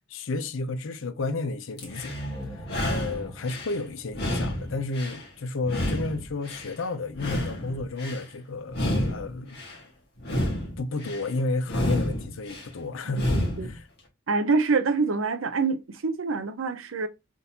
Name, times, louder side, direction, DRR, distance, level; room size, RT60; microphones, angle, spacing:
voice 1, 0.1-2.1 2.4-9.6 10.8-13.3 13.6-13.9, left 3 dB, 70° left, 0.6 m, -32 dB
sound 1, 1.8-2.3 2.6-3.7 4.1-5.3 5.6-6.7 7.1-8.2 8.7-9.8 10.2-11.2 11.7-12.7 13.1-13.7, left 1 dB, 55° left, 1.7 m, -29 dB
sound 2, 1.8-5.5, right 1 dB, 30° left, 2.2 m, -42 dB
voice 2, 13.3-13.7 14.3-17.1, right 4 dB, 70° right, 0.6 m, -26 dB
3.9 x 3.7 x 2.8 m
head